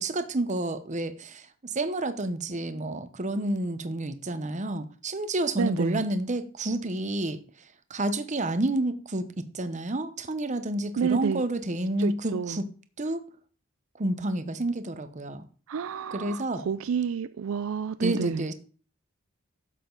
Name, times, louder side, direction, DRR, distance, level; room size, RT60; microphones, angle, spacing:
voice 1, 0.0-7.4 7.9-12.7 13.0-13.2 14.0-15.5 16.1-16.6 18.0-18.5, right 1 dB, 35° right, 0.8 m, -29 dB
voice 2, 5.6-6.0 11.0-11.4 12.0-12.6 15.7-18.5, right 6 dB, 70° right, 0.4 m, -29 dB
11.5 x 7.6 x 3.9 m
head